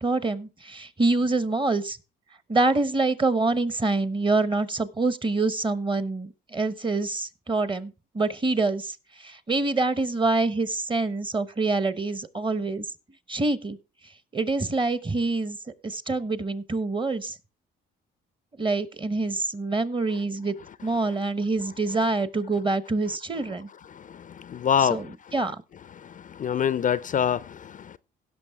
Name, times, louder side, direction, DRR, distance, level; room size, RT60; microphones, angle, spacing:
voice 1, 0.0-2.0 2.5-12.9 13.3-13.8 14.3-15.6 15.8-17.4 18.6-20.5 20.8-23.7 24.8-25.6, right 3 dB, 25° right, 0.9 m, -26 dB
voice 2, 23.9-25.0 26.0-28.0, left 8 dB, 40° left, 0.4 m, -26 dB
17.0 x 6.1 x 3.5 m
cardioid pair, 90°, 20 cm